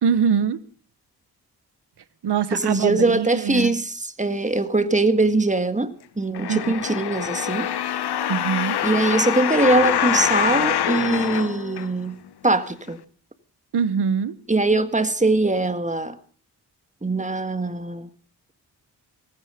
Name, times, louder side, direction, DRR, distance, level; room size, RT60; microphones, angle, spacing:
voice 1, 0.0-0.6 2.2-3.7 6.5-6.6 8.3-8.8 13.7-14.3, right 7 dB, 75° right, 1.3 m, -23 dB
voice 2, 2.5-7.7 8.8-13.0 14.5-16.2 17.0-18.1, right 2 dB, 20° right, 1.8 m, -22 dB
sound 1, 6.3-12.3 12.9-13.0, left 10 dB, 75° left, 1.0 m, -25 dB
18.0 x 15.5 x 5.2 m
cardioid pair, 65°, 40 cm